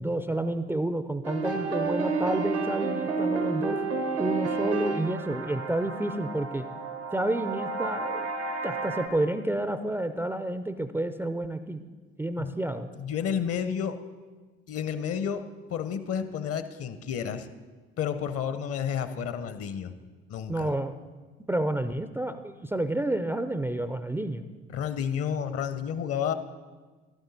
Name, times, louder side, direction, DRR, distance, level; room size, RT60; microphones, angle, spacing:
voice 1, 0.0-3.8 4.2-6.7 7.1-8.3 8.6-11.8 12.2-12.9 20.5-21.0 21.5-24.4, right 1 dB, 5° right, 10 dB, 0.4 m, -30 dB
sound 1, 1.2-9.1, right 4 dB, 85° right, 1.2 m, -31 dB
voice 2, 13.0-14.0 14.7-17.5 18.0-19.9 20.3-20.7 24.7-26.3, left 8 dB, 45° left, 11 dB, 0.8 m, -31 dB
12.0 x 8.1 x 4.1 m, 1.4 s
hypercardioid pair, 55°, 32 cm